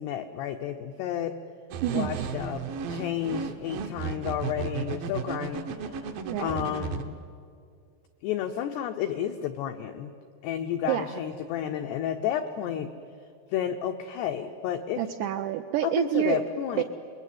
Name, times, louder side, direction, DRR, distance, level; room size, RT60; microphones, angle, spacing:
voice 1, 0.0-1.4 1.9-6.1 6.4-7.2 8.2-10.1 10.4-12.9 13.5-15.0 15.8-16.8, left 10 dB, 85° left, 6 dB, 2.3 m, -31 dB
sound 1, 1.7-7.0, right 6 dB, 70° right, 2.3 m, -34 dB
voice 2, 1.8-2.2 6.2-6.7 10.9-11.1 15.0-16.4 16.8-16.9, right 12 dB, 90° right, 5 dB, 2.4 m, -28 dB
27.5 x 21.5 x 9.3 m, 2.4 s
omnidirectional pair, 5.9 m